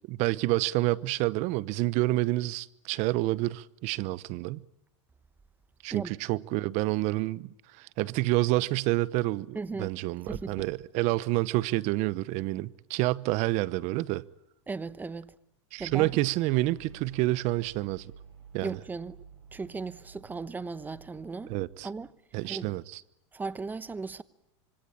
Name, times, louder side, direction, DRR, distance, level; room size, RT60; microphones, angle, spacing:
voice 1, 0.1-4.6 5.8-14.3 15.7-18.1 18.5-18.8 21.5-21.9 22.3-23.0, right 19 dB, 50° right, 1.0 m, -28 dB
voice 2, 9.5-9.9 10.3-10.7 14.7-15.3 15.8-16.1 18.6-19.2 19.5-21.5 21.8-22.1 22.5-22.7 23.3-24.2, right 4 dB, 10° right, 1.0 m, -36 dB
sound 1, 15.8-22.1, right 6 dB, 85° right, 6.9 m, -52 dB
26.0 x 24.5 x 8.7 m
supercardioid pair, 130°, 15 cm